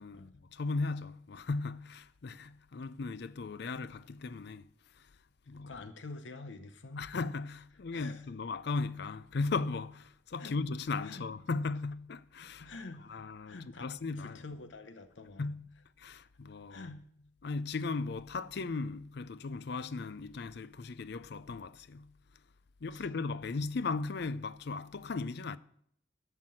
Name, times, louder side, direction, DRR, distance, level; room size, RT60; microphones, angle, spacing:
voice 1, 0.0-4.7 5.0-5.1 5.5-5.7 7.0-12.7 13.1-14.4 15.4-15.7 16.0-16.9 17.4-22.1 22.8-25.6, left 3 dB, 60° left, 0.5 m, -37 dB
voice 2, 5.7-7.1 7.9-8.3 10.4-10.6 11.0-11.2 12.6-15.5 16.7-17.0 22.9-23.1, left 3 dB, 75° left, 0.9 m, -47 dB
12.0 x 6.0 x 7.5 m
head